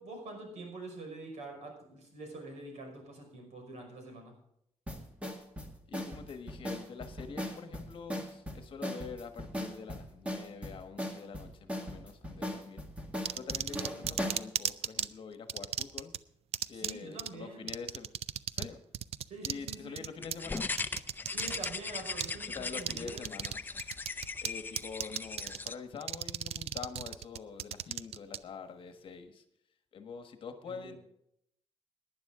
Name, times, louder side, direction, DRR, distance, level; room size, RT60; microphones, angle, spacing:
voice 1, 0.0-4.4 13.9-14.1 16.7-17.7 19.3-20.0 21.3-23.3 30.6-31.0, right 2 dB, 80° right, 2 dB, 5.5 m, -46 dB
sound 1, 4.9-14.5, equal, 10° right, 1.9 m, -39 dB
voice 2, 5.9-12.9 13.3-16.1 16.7-18.1 18.5-18.8 19.4-20.8 22.5-23.8 24.4-29.4 29.9-30.9, left 5 dB, 50° left, 7 dB, 1.4 m, -45 dB
sound 2, 13.2-15.1 15.5-16.2 16.5-16.9 17.2-17.3 17.7-18.7 18.9-21.7 22.2-22.3 22.8-23.5 23.8-24.5 24.8-25.7 26.0-28.4, right 10 dB, 65° right, 0.5 m, -34 dB
sound 3, 20.2-25.7, left 4 dB, 15° left, 0.5 m, -39 dB
18.5 x 10.5 x 3.7 m, 0.74 s
wide cardioid pair, 165°, 11 cm